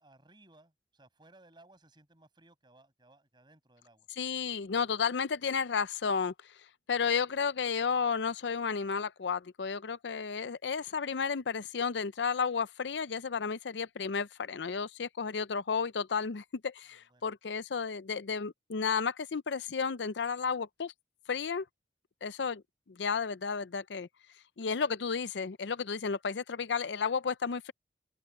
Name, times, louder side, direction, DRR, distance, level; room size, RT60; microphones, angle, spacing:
voice 1, 0.0-4.1 17.1-17.3, right 2 dB, 25° right, 5.7 m, -61 dB
voice 2, 4.2-6.3 6.9-20.9 21.3-21.6 22.2-22.6 22.9-24.1 24.6-27.7, left 5 dB, 85° left, 0.6 m, -32 dB
open air
head